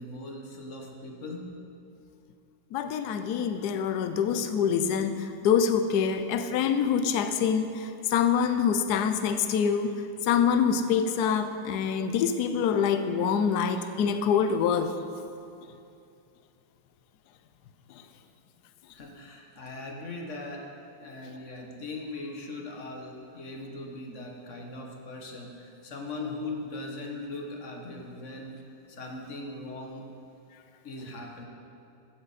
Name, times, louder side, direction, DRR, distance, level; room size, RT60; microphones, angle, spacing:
voice 1, 0.0-1.5 18.9-20.7 21.0-28.6 28.9-30.0 30.8-31.4, left 2 dB, 40° left, 1 dB, 1.4 m, -39 dB
voice 2, 2.7-5.1 5.4-9.9 10.2-14.9, left 7 dB, 70° left, 9 dB, 0.9 m, -25 dB
15.0 x 10.0 x 4.2 m, 2.6 s
omnidirectional pair, 2.4 m